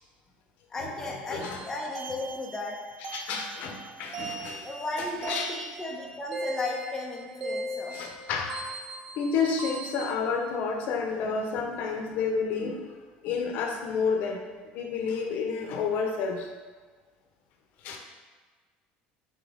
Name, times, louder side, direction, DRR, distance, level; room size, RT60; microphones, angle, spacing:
voice 1, 0.7-2.7 4.6-8.0, left 2 dB, 10° left, -2 dB, 0.6 m, -35 dB
voice 2, 1.3-1.6 3.0-4.7 5.2-5.5 7.9-8.6 9.2-12.8 13.2-14.4 14.7-16.5 17.8-18.0, left 5 dB, 55° left, 3 dB, 0.8 m, -30 dB
sound 1, 1.4-10.1, right 1 dB, 30° right, 0.6 m, -39 dB
6.2 x 4.7 x 3.4 m, 1.4 s
cardioid pair, 165°, 3 cm